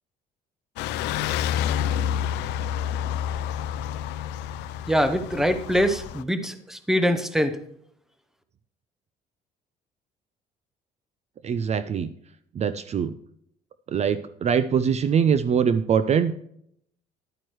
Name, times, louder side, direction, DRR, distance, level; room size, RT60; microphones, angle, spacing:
sound 1, 0.8-6.2, left 10 dB, 90° left, 0.5 m, -29 dB
voice 1, 4.9-7.6, equal, ahead, 9 dB, 0.9 m, -23 dB
voice 2, 11.4-12.1 12.5-13.1 13.9-16.3, right 7 dB, 40° right, 13 dB, 0.5 m, -23 dB
11.5 x 8.8 x 3.1 m, 0.70 s
cardioid pair, 110°, 17 cm